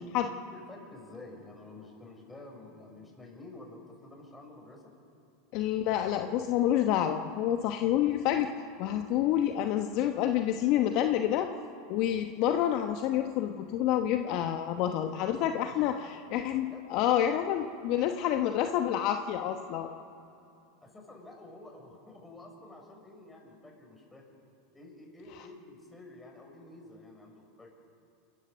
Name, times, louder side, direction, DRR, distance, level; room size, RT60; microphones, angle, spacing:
voice 1, 0.4-4.9 15.5-15.7 16.5-16.8 20.8-24.2 24.7-27.7, left 2 dB, 10° left, 0 dB, 6.6 m, -50 dB
voice 2, 5.5-8.5 8.8-11.5 11.9-19.9, left 11 dB, 55° left, 6 dB, 1.1 m, -28 dB
28.5 x 14.5 x 6.9 m, 2.7 s
hypercardioid pair, 90°, 0 cm